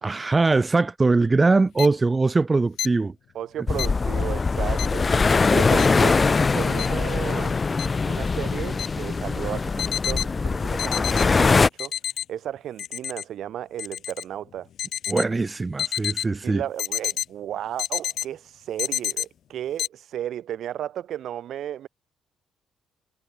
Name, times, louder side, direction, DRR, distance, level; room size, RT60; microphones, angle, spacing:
voice 1, 0.0-3.1 15.1-16.6, right 3 dB, 25° right, 1.4 m, -21 dB
sound 1, 1.8-1.9 2.8-2.9 3.8-3.9 4.8-4.9 5.8-5.9 6.8-6.9 7.8-7.9 8.8-8.9 9.8-10.2 10.8-11.2 11.8-12.2 12.8-13.2 13.8-14.2 14.8-15.2 15.8-16.2 16.8-17.2 17.8-18.2 18.8-19.2 19.8-19.9, left 10 dB, 70° left, 2.6 m, -27 dB
voice 2, 3.3-5.1 5.5-7.6 8.0-11.9 12.3-14.7 16.4-21.9, right 11 dB, 70° right, 4.7 m, -34 dB
sound 2, 3.7-11.7, left 4 dB, 30° left, 1.3 m, -22 dB
cardioid pair, 90°, 0 cm